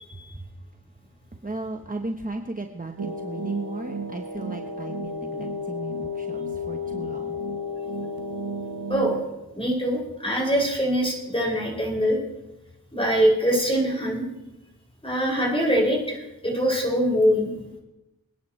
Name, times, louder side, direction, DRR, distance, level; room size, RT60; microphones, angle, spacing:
voice 1, 0.1-0.5 1.4-7.4, right 2 dB, 20° right, 3 dB, 1.2 m, -36 dB
sound 1, 3.0-9.2, left 1 dB, 70° right, 1.5 m, -32 dB
voice 2, 9.5-12.2 12.9-14.3 15.0-17.5, equal, 15° left, -2 dB, 6.7 m, -23 dB
25.5 x 10.0 x 3.3 m, 0.97 s
cardioid pair, 40°, 37 cm